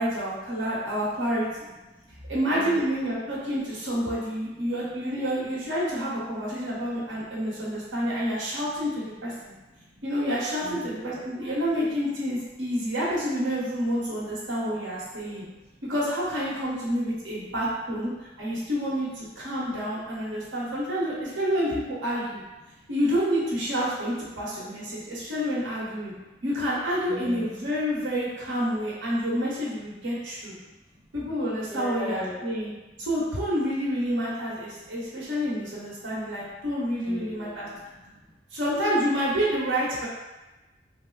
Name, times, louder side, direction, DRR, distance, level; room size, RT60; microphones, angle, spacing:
voice 1, 0.0-1.7 2.3-9.5 10.0-15.4 15.9-18.1 18.4-22.4 22.9-26.1 26.4-30.5 31.1-32.7 33.0-37.7 38.5-40.1, equal, 80° right, -7 dB, 1.2 m, -28 dB
voice 2, 2.5-2.9 9.8-10.0 10.6-11.3 15.4-15.5 22.7-22.8 25.0-25.1 27.1-27.5 30.6-31.0 31.7-32.5 34.7-34.8 37.1-38.4, left 1 dB, ahead, -4 dB, 0.5 m, -40 dB
3.3 x 2.0 x 3.9 m, 1.1 s
head